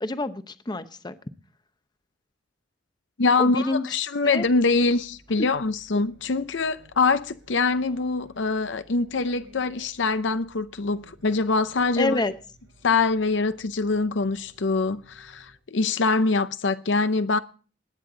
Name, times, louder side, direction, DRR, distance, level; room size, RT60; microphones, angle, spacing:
voice 1, 0.0-1.1 3.4-3.9 4.2-4.5 12.0-12.3, left 2 dB, 20° left, 0.7 m, -27 dB
voice 2, 3.2-12.2 12.8-17.4, left 3 dB, 65° left, 0.7 m, -24 dB
sound 1, 4.4-15.6, right 1 dB, 75° right, 5.8 m, -55 dB
19.5 x 9.5 x 3.9 m
head